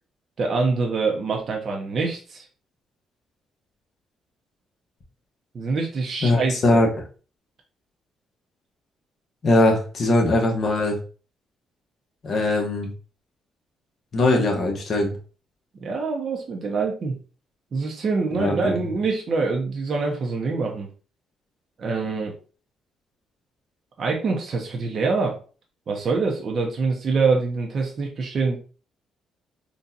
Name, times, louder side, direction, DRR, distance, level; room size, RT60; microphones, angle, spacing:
voice 1, 0.4-2.5 5.5-6.8 15.8-17.2 17.7-20.9 21.8-22.4 24.0-25.4 25.9-28.6, right 4 dB, 50° right, 0 dB, 0.7 m, -25 dB
voice 2, 6.2-6.9 9.4-11.0 12.2-12.9 14.1-15.1 18.4-18.7, left 2 dB, 50° left, 1 dB, 1.1 m, -20 dB
3.9 x 2.4 x 2.7 m, 0.37 s
cardioid pair, 90°, 0 cm